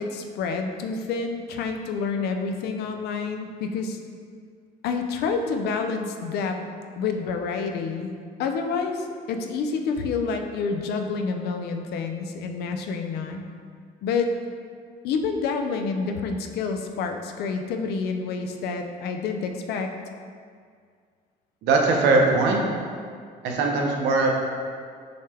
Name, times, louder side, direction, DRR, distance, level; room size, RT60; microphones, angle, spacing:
voice 1, 0.0-4.0 4.8-6.6 7.0-8.1 8.4-13.4 14.0-14.3 15.0-19.9, left 5 dB, 75° left, 5 dB, 0.5 m, -28 dB
voice 2, 21.6-22.6 23.4-24.3, right 3 dB, 85° right, 1 dB, 0.7 m, -20 dB
6.4 x 2.2 x 3.3 m, 2.1 s
cardioid pair, 110°, 17 cm